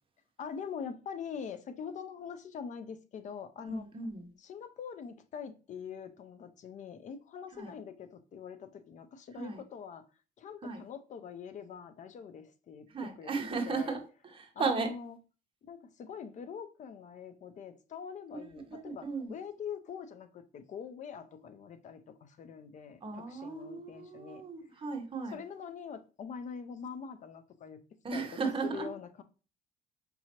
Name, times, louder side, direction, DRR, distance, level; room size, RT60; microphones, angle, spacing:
voice 1, 0.4-3.9 4.4-10.0 10.4-14.0 14.5-15.2 15.6-24.4 25.3-27.8 28.1-29.2, left 6 dB, 45° left, 0.5 m, -44 dB
voice 2, 3.6-4.3 7.5-7.7 9.4-9.6 10.6-10.8 12.9-14.9 18.3-19.3 23.0-25.4 28.0-28.9, right 4 dB, 30° right, 1.1 m, -36 dB
5.3 x 2.8 x 2.9 m
cardioid pair, 110°, 17 cm